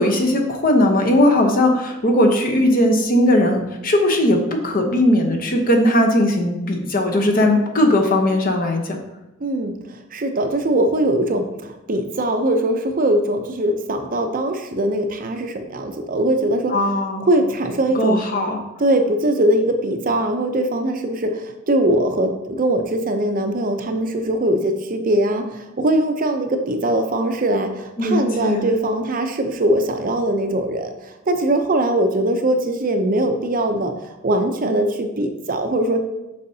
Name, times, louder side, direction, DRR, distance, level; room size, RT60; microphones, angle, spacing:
voice 1, 0.0-9.0 16.7-17.4 17.9-18.6 28.0-28.7, left 1 dB, 45° left, 3 dB, 0.9 m, -18 dB
voice 2, 9.4-9.7 10.1-16.7 17.3-18.2 18.8-30.9 31.3-33.9 34.2-36.0, right 1 dB, 45° right, 6 dB, 0.6 m, -21 dB
6.7 x 5.6 x 2.8 m, 0.98 s
head